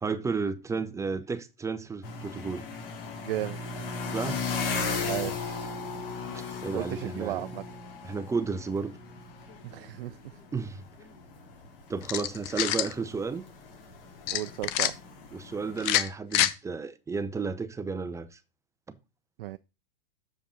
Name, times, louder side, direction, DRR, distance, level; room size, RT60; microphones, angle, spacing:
voice 1, 0.0-2.7 4.1-4.4 5.0-5.3 6.3-7.4 8.0-9.0 10.5-10.8 11.9-13.4 15.3-18.4, right 4 dB, 10° right, 0.6 m, -32 dB
sound 1, 2.0-15.9, left 4 dB, 70° left, 3.3 m, -37 dB
voice 2, 3.2-3.9 5.0-5.7 6.7-7.6 9.6-10.4 14.3-15.0 19.4-19.6, right 15 dB, 70° right, 0.5 m, -35 dB
sound 2, 12.0-12.9 14.3-14.9 15.8-16.5, left 13 dB, 40° left, 0.8 m, -26 dB
7.1 x 5.1 x 4.9 m
hypercardioid pair, 120°, 29 cm